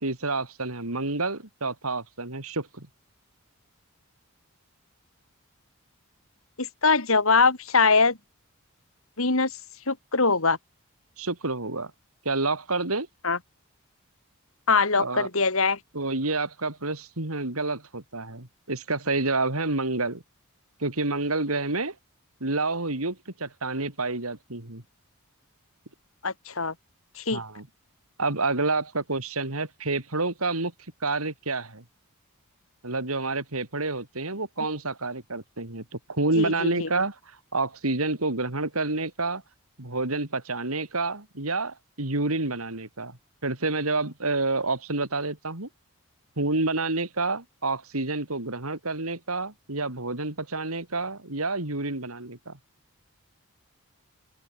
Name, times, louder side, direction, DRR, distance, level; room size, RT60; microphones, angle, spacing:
voice 1, 0.0-2.9 11.2-11.9 12.3-13.1 14.9-15.3 15.9-20.2 20.8-21.9 22.4-24.8 27.3-27.7 28.2-30.7 31.0-31.8 32.8-37.2 37.5-39.4 39.8-45.7 46.4-52.6, right 3 dB, 80° right, 3.7 m, -29 dB
voice 2, 6.6-8.2 9.2-9.5 9.9-10.6 13.2-13.4 14.7-15.8 26.2-26.7 27.2-27.4 36.4-36.9, left 4 dB, 65° left, 2.9 m, -22 dB
head